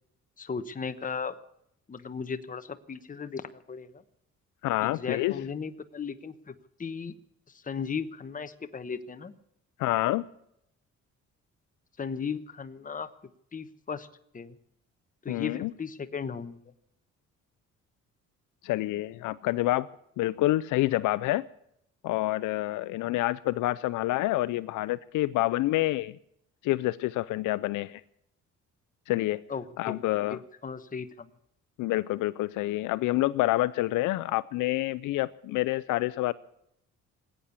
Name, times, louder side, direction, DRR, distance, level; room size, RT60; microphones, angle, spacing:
voice 1, 0.4-1.4 1.9-4.0 4.8-7.2 7.5-9.4 12.0-13.1 13.5-14.1 14.3-14.5 15.2-16.6 29.5-30.0 30.3-31.3, left 6 dB, 25° left, 1.1 m, -36 dB
voice 2, 4.6-5.4 9.8-10.2 15.3-15.7 18.6-19.9 20.2-21.5 22.0-26.2 26.6-28.0 29.1-29.4 29.8-30.4 31.8-36.3, left 17 dB, 85° left, 0.5 m, -27 dB
20.0 x 8.8 x 8.2 m
cardioid pair, 90°, 30 cm